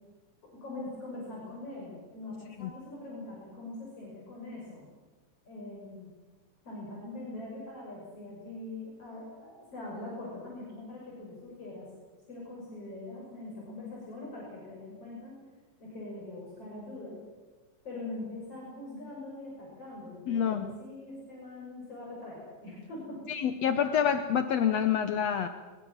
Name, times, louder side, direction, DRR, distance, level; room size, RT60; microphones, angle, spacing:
voice 1, 0.5-4.9 5.5-6.1 6.7-11.9 12.3-15.4 15.8-17.2 17.8-23.2, left 2 dB, 50° left, -4 dB, 7.3 m, -42 dB
voice 2, 20.3-20.7 23.3-25.5, left 8 dB, 65° left, 9 dB, 1.9 m, -27 dB
22.5 x 22.5 x 7.3 m, 1.3 s
omnidirectional pair, 3.6 m